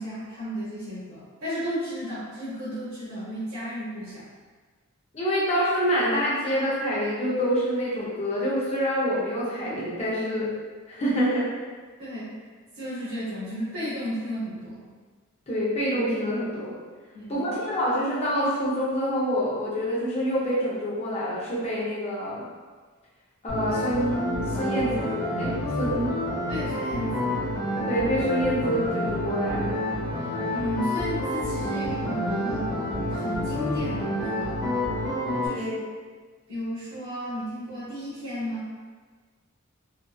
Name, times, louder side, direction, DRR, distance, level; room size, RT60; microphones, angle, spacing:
voice 1, 0.0-4.3 12.0-12.4 12.7-14.9 17.1-17.5 26.5-27.5 30.5-32.8 33.1-34.7 35.4-35.7 36.5-38.6, equal, 80° right, -11 dB, 0.8 m, -34 dB
voice 2, 5.1-10.5 10.9-11.5 15.5-16.7 17.3-22.4 23.4-26.2 27.9-29.7 35.4-35.8, equal, 30° left, -7 dB, 0.6 m, -26 dB
sound 1, 23.5-35.5, left 1 dB, ahead, 1.0 m, -28 dB
2.6 x 2.5 x 2.2 m, 1.5 s
head